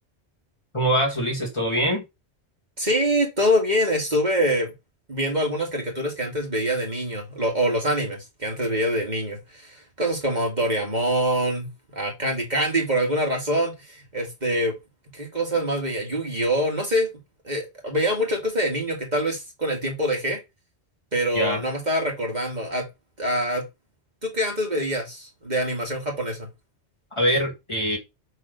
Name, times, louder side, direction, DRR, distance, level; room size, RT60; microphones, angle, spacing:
voice 1, 0.7-2.0 21.3-21.6 27.2-28.0, equal, 25° left, 2.1 m, -23 dB
voice 2, 2.8-4.7 5.1-14.8 15.1-17.1 17.4-20.4 21.1-22.9 23.2-23.6 24.2-26.5, equal, 40° right, 2.1 m, -25 dB
6.8 x 3.5 x 5.2 m
omnidirectional pair, 1.1 m